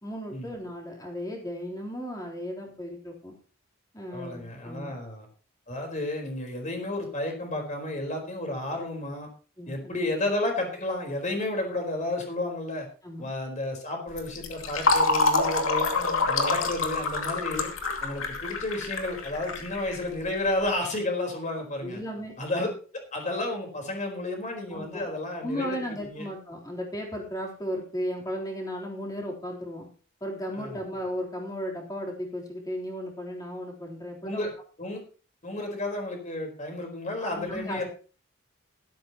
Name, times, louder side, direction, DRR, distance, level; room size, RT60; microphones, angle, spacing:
voice 1, 0.0-3.3 3.9-4.9 9.6-10.0 13.0-13.3 16.0-16.3 21.8-22.3 24.7-25.1 25.4-29.9 30.2-34.5 37.2-37.8, equal, 20° left, -1 dB, 3.6 m, -35 dB
voice 2, 4.1-5.3 5.7-9.3 9.7-12.9 13.2-15.9 16.3-17.7 18.0-22.0 22.4-25.8 26.1-26.2 30.5-30.8 34.2-34.5 34.8-35.0 35.4-37.8, left 2 dB, 35° left, 2 dB, 4.3 m, -32 dB
Fill (with liquid), 14.1-20.5, left 3 dB, 85° left, 2.4 m, -27 dB
16.5 x 13.0 x 3.0 m, 0.38 s
head